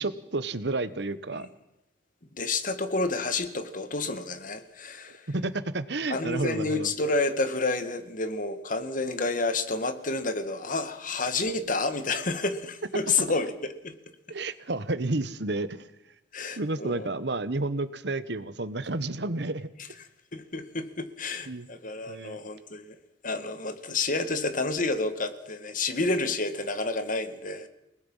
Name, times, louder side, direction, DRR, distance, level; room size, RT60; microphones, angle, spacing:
voice 1, 0.0-1.5 5.3-6.9 14.3-15.9 16.6-19.7 21.5-21.7 22.1-22.4, right 2 dB, 70° right, 13 dB, 1.2 m, -31 dB
voice 2, 2.3-5.3 6.1-13.5 13.8-13.9 16.3-17.1 20.3-23.0 23.2-27.7, left 3 dB, 50° left, 9 dB, 1.9 m, -29 dB
29.0 x 19.0 x 5.6 m, 0.90 s
head